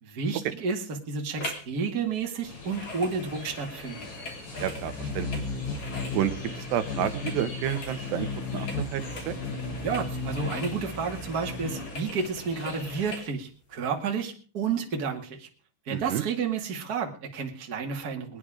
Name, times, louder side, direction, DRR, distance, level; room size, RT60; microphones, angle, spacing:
voice 1, 0.0-4.1 9.8-15.5 15.9-18.4, right 5 dB, 35° right, 2 dB, 1.6 m, -31 dB
sound 1, 1.4-1.7 2.0-13.3 13.8-13.9, left 2 dB, 30° left, 3.2 m, -42 dB
sound 2, 2.4-13.2, left 3 dB, 75° left, 9.2 m, -36 dB
voice 2, 4.6-5.5 6.1-8.3 8.5-9.3 15.9-16.2, right 10 dB, 75° right, 9 dB, 3.1 m, -30 dB
22.0 x 9.7 x 5.0 m, 0.40 s
omnidirectional pair, 5.2 m